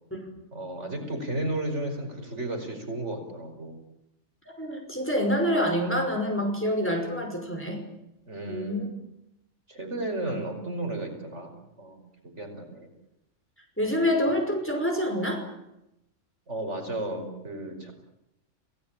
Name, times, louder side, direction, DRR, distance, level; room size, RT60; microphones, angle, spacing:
voice 1, 0.5-3.8 8.3-9.0 9.7-12.9 13.9-14.1 16.5-17.9, right 1 dB, 55° right, 4 dB, 5.4 m, -34 dB
voice 2, 4.6-7.8 8.5-8.9 13.8-15.4, equal, 10° left, 2 dB, 5.6 m, -26 dB
29.5 x 18.5 x 8.9 m, 0.87 s
omnidirectional pair, 1.4 m